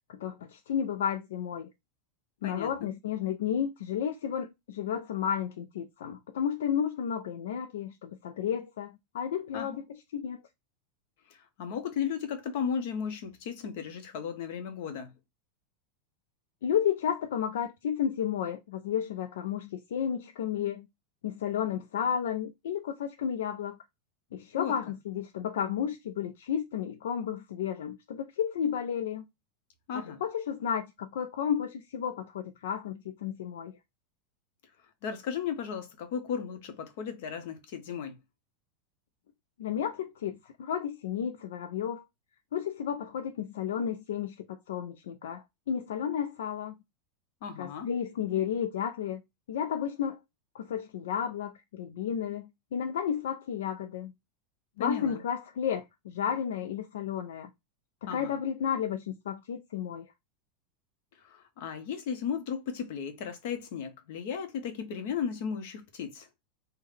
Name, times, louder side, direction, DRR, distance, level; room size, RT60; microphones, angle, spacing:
voice 1, 0.1-1.7 2.4-9.8 10.1-10.4 16.6-20.9 21.2-23.8 24.3-29.2 29.9-33.7 39.6-42.0 42.5-46.7 47.6-49.2 49.5-50.2 50.5-54.1 54.8-57.5 58.0-60.1, left 8 dB, 90° left, 0.4 m, -32 dB
voice 2, 11.3-15.1 24.6-24.7 29.9-30.2 35.0-38.2 47.4-47.9 54.8-55.2 58.1-58.3 61.2-66.3, left 7 dB, 55° left, 0.9 m, -35 dB
3.5 x 2.2 x 3.3 m
supercardioid pair, 160°, 0 cm